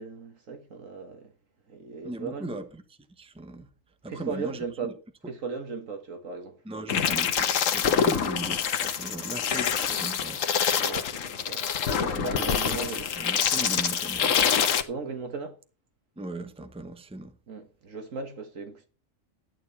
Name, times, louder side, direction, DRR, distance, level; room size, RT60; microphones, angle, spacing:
voice 1, 0.0-1.3 1.7-2.5 4.1-5.0 5.3-6.6 10.7-13.0 14.8-15.6 17.5-18.9, right 4 dB, 80° right, 2.0 m, -37 dB
voice 2, 2.0-2.8 3.2-3.7 4.0-4.9 6.6-10.4 12.0-14.4 16.2-17.3, right 2 dB, 5° right, 0.9 m, -39 dB
sound 1, 6.9-14.8, left 7 dB, 85° left, 1.3 m, -26 dB
12.0 x 9.1 x 4.2 m
omnidirectional pair, 1.3 m